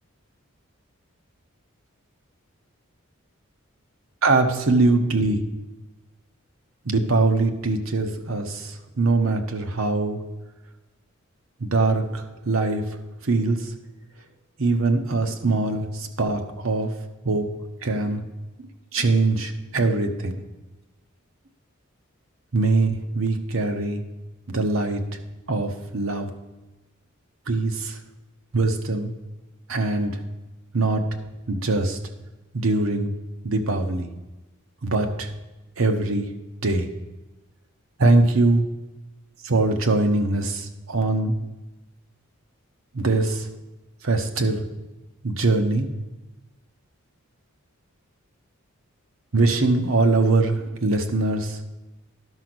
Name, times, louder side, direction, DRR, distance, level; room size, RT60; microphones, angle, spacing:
voice 1, 4.2-5.5 6.8-10.2 11.6-12.8 13.2-13.6 14.6-16.9 17.2-17.5 17.8-18.2 18.9-20.3 22.5-24.0 24.5-25.0 25.5-26.3 27.5-28.0 28.5-29.1 29.7-30.2 30.7-31.0 31.5-32.0 32.5-33.1 33.4-34.1 34.8-35.3 35.8-36.3 36.6-36.9 38.0-38.6 39.4-41.3 42.9-43.5 44.0-44.6 45.2-45.9 49.3-51.6, right 3 dB, 70° right, 5 dB, 1.0 m, -22 dB
11.5 x 5.1 x 6.1 m, 1.1 s
head